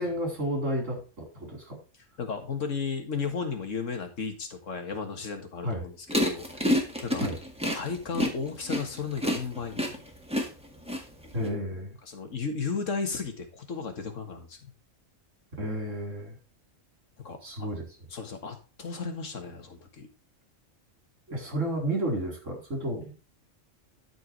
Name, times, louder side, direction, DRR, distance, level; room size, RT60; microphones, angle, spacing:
voice 1, 0.0-1.8 5.6-5.9 7.2-7.4 11.3-12.0 15.6-16.4 17.4-17.8 21.3-23.1, right 1 dB, 85° right, 0 dB, 4.4 m, -31 dB
voice 2, 2.2-6.7 7.0-7.2 7.7-10.0 12.0-14.7 17.2-17.7 18.1-20.1, left 5 dB, 85° left, 6 dB, 2.0 m, -34 dB
sound 1, 6.1-11.5, equal, 5° right, 1.8 m, -28 dB
12.5 x 4.7 x 4.6 m, 0.33 s
omnidirectional pair, 1.3 m